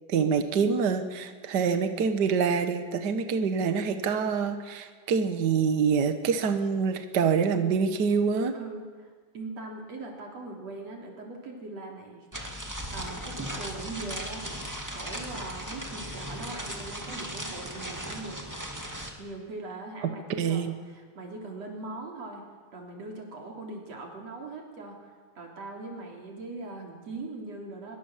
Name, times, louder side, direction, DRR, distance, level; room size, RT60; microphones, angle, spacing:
voice 1, 0.1-8.5 20.0-20.1 20.4-20.7, right 6 dB, 80° right, 8 dB, 0.9 m, -26 dB
voice 2, 8.5-12.3 12.9-18.4 19.2-22.4 22.7-28.0, right 2 dB, 45° right, 0 dB, 4.6 m, -41 dB
sound 1, 12.3-19.1, equal, 5° right, 1.6 m, -37 dB
23.5 x 22.0 x 7.4 m, 1.5 s
omnidirectional pair, 4.2 m